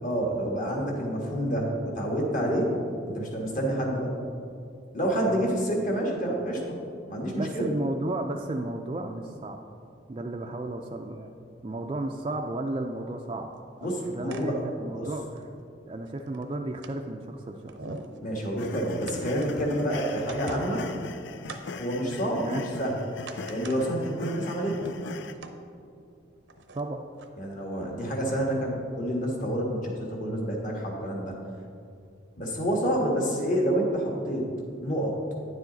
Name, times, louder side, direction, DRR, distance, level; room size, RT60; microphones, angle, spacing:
voice 1, 0.0-2.7 3.1-4.2 4.9-6.8 7.1-7.7 13.8-14.6 14.9-15.1 18.2-20.9 21.8-23.0 23.5-24.9 27.4-31.3 32.4-34.5 34.8-35.2, equal, 45° left, -1 dB, 1.5 m, -28 dB
voice 2, 7.3-9.6 10.1-11.3 11.6-13.5 13.8-15.5 15.9-17.8 22.4-22.6 26.7-27.0, right 2 dB, 30° right, 2 dB, 0.3 m, -33 dB
sound 1, 13.8-14.4 14.9-15.0 15.4-15.5 16.0-17.0 17.4-17.5 17.7-18.2 19.1-19.8 20.1-20.9 21.5-21.6 22.1-22.8 23.1-23.8 24.2-24.3 24.7-25.5 26.5-26.8 27.2-27.3, right 3 dB, 80° right, 0.7 m, -43 dB
sound 2, 18.6-25.3, left 5 dB, 70° left, 0.4 m, -41 dB
9.9 x 7.3 x 3.9 m, 2.5 s
head